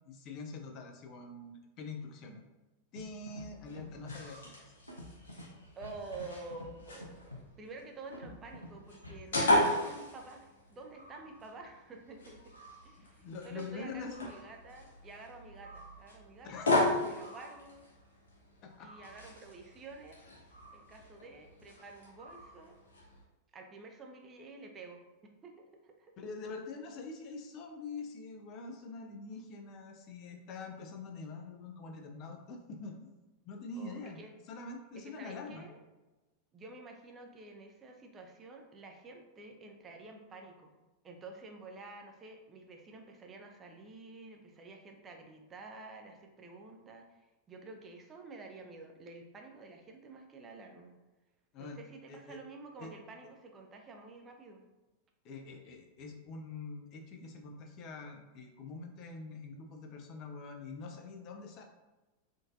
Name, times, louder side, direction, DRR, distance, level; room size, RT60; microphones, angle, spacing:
voice 1, 0.1-2.4 2.9-4.6 13.0-14.3 16.4-16.7 18.6-18.9 26.2-33.1 33.4-34.2 34.5-35.7 51.5-51.8 52.1-52.4 52.8-52.9 55.2-61.6, left 3 dB, 40° left, 3 dB, 0.5 m, -45 dB
Scratching (performance technique), 3.0-3.1 3.3-3.5 3.8-4.2 4.9-5.4 5.8-6.3 6.5-6.7 7.0-7.4 8.1-8.7 9.0-9.4, left 1 dB, 85° left, 0.5 m, -47 dB
sound 1, 3.5-23.2, left 1 dB, 65° left, 1.2 m, -37 dB
voice 2, 5.8-12.6 12.8-17.9 18.8-20.3 20.7-22.8 23.5-25.0 25.4-26.1 33.8-34.3 35.0-35.8 36.5-40.7 41.0-50.9 51.6-54.6, right 3 dB, 25° right, 3 dB, 0.5 m, -50 dB
3.7 x 2.5 x 2.5 m, 1.1 s
figure-of-eight pair, 90°, 0 cm